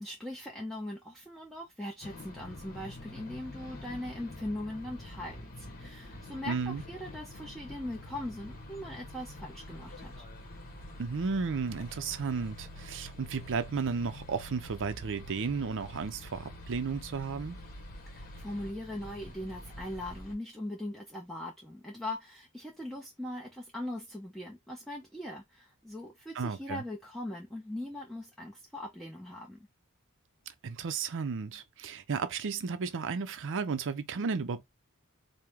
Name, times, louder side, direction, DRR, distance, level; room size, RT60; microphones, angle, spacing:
voice 1, 0.0-10.1 18.1-29.7, left 1 dB, ahead, 0.7 m, -40 dB
sound 1, 2.0-20.3, left 1 dB, 40° left, 1.1 m, -46 dB
voice 2, 6.5-6.8 11.0-17.6 26.4-26.8 30.6-34.6, right 5 dB, 60° right, 0.5 m, -33 dB
4.7 x 2.1 x 3.5 m
head